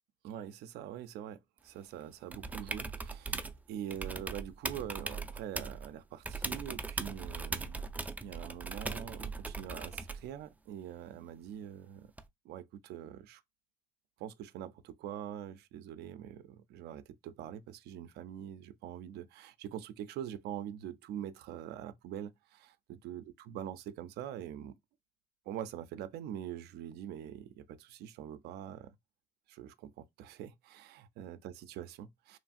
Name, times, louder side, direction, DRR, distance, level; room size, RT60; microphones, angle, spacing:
voice 1, 0.2-7.8 8.2-12.1 12.4-13.4 14.2-24.7 25.5-29.0 29.5-32.4, right 10 dB, 75° right, 0.4 m, -44 dB
sound 1, 2.3-3.6 3.9-5.9 6.2-10.3 12.2-12.3, right 3 dB, 10° right, 0.3 m, -39 dB
3.1 x 2.3 x 2.5 m
cardioid pair, 110°, 17 cm